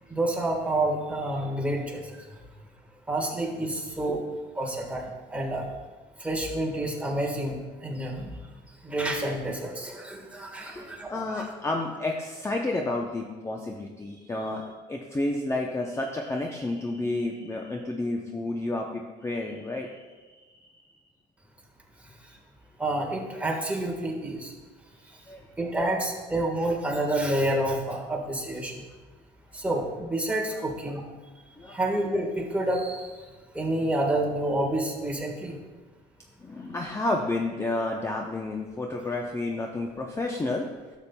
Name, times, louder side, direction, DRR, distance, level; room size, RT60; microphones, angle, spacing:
voice 1, 0.1-2.3 3.1-4.2 4.5-5.7 6.2-8.4 8.8-11.4 22.8-24.5 25.6-28.8 29.5-31.0 31.7-33.2 33.5-35.6, right 1 dB, 10° right, -1 dB, 1.4 m, -29 dB
voice 2, 10.6-20.8 25.3-25.5 30.5-30.6 31.6-31.8 36.4-40.7, left 2 dB, 15° left, 1 dB, 0.6 m, -31 dB
11.5 x 7.1 x 2.2 m, 1.3 s
cardioid pair, 110°, 17 cm